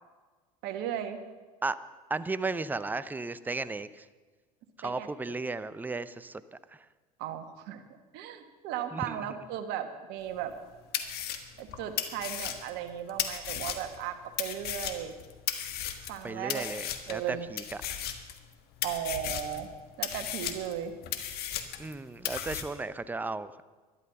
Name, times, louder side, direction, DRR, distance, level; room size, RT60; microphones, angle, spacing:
voice 1, 0.6-1.2 4.8-5.3 7.2-7.8 8.1-10.5 11.6-15.1 16.1-16.6 17.1-17.5 18.8-19.7 20.0-20.9, right 10 dB, 60° right, 7 dB, 1.6 m, -36 dB
voice 2, 2.1-4.1 4.8-6.4 6.7-6.8 8.9-9.2 16.2-18.1 21.8-23.6, right 3 dB, 10° right, 15 dB, 0.6 m, -35 dB
sound 1, 10.4-10.5 10.9-14.0 14.4-16.2 16.5-17.2 17.6-18.5 18.8-19.6 20.0-21.9 22.3-22.6, left 10 dB, 55° left, 1.5 m, -35 dB
12.0 x 11.5 x 6.8 m, 1.4 s
hypercardioid pair, 80°, 19 cm